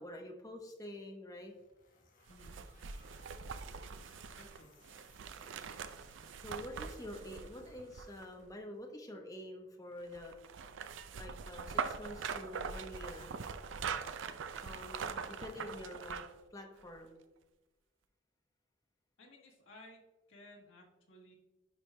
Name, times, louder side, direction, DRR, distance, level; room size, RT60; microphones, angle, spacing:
voice 1, 0.0-1.5 6.3-10.3 11.1-13.5 14.6-16.2 16.5-17.2, left 1 dB, 20° left, 2 dB, 0.9 m, -47 dB
sound 1, 1.4-8.9, left 4 dB, 45° left, 1.1 m, -66 dB
sound 2, 2.3-8.5 10.1-16.4 16.8-16.9, right 6 dB, 70° right, 0.4 m, -43 dB
voice 2, 4.4-4.7 19.2-20.0 20.3-21.3, left 1 dB, 80° left, -1 dB, 1.5 m, -57 dB
9.9 x 4.8 x 2.2 m, 1.1 s
head